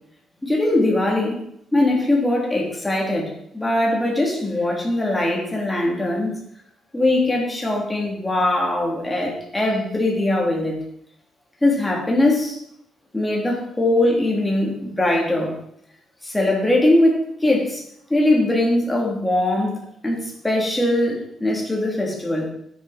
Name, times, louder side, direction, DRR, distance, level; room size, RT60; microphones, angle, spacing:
voice 1, 0.4-1.4 1.7-6.3 6.9-10.8 11.6-12.6 13.1-15.5 16.2-17.8 18.1-22.5, left 1 dB, 10° left, -2 dB, 3.3 m, -21 dB
13.0 x 10.0 x 4.4 m, 0.72 s
cardioid pair, 145°, 0 cm